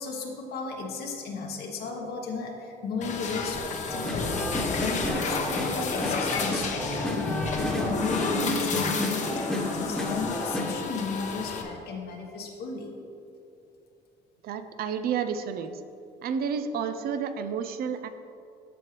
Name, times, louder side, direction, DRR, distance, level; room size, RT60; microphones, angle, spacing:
voice 1, 0.0-7.2 7.5-12.9, left 4 dB, 70° left, 1 dB, 1.3 m, -35 dB
sound 1, 3.0-11.6, left 4 dB, 45° left, 0.9 m, -31 dB
sound 2, 3.9-10.6, left 1 dB, ahead, 1.2 m, -31 dB
voice 2, 14.4-15.7 16.2-18.1, right 7 dB, 65° right, 10 dB, 0.5 m, -30 dB
13.0 x 4.6 x 3.3 m, 2.6 s
cardioid pair, 110°, 17 cm